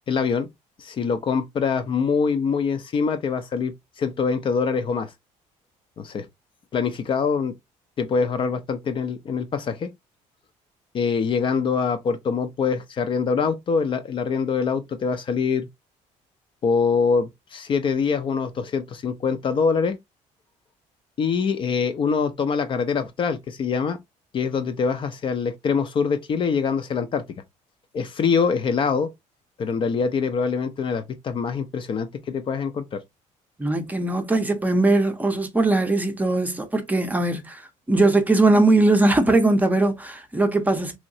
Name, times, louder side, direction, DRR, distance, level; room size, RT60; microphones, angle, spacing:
voice 1, 0.1-0.5 0.8-5.1 6.0-6.3 6.7-7.5 8.0-9.9 10.9-15.7 16.6-20.0 21.2-24.0 24.3-27.2 27.9-29.1 29.6-33.0, left 5 dB, 40° left, 0.5 m, -24 dB
voice 2, 33.6-41.0, right 2 dB, 10° right, 0.6 m, -20 dB
3.1 x 2.8 x 2.6 m
cardioid pair, 125°, 14 cm